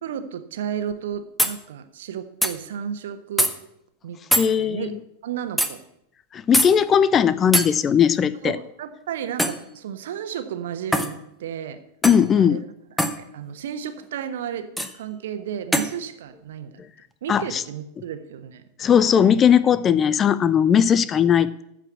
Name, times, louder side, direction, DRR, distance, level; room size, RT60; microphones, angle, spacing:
voice 1, 0.0-3.5 4.0-4.9 5.2-5.8 8.4-11.8 12.4-12.6 13.2-16.8 17.2-18.6, right 9 dB, 60° right, 9 dB, 1.1 m, -33 dB
sound 1, 0.9-1.0 1.4-1.6 2.4-2.5 3.4-3.5 4.3-4.5 5.6-5.7 6.5-6.7 7.5-7.7 9.4-9.6 10.9-11.1 12.0-12.3 13.0-13.2 14.8-14.9 15.7-15.9, equal, ahead, 1.0 m, -21 dB
voice 2, 4.4-4.9 6.3-8.6 12.0-12.6 17.3-17.6 18.8-21.6, left 8 dB, 25° left, 17 dB, 0.5 m, -18 dB
14.0 x 4.9 x 8.3 m, 0.78 s
figure-of-eight pair, 90°, 0 cm